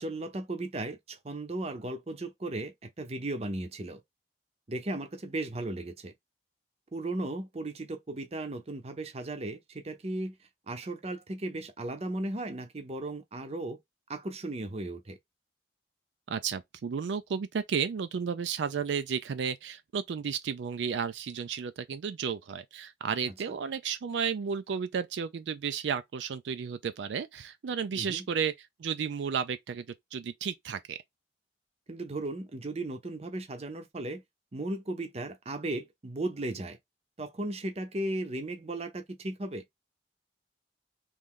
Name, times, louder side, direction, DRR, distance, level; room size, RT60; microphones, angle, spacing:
voice 1, 0.0-4.0 4.7-6.1 6.9-10.3 10.7-13.8 14.1-15.2 27.9-28.3 31.9-34.2 34.5-36.8 37.2-39.6, right 2 dB, 35° right, 0.7 m, -36 dB
voice 2, 16.3-29.9 30.1-31.0, right 6 dB, 80° right, 0.4 m, -33 dB
3.1 x 2.6 x 3.6 m
head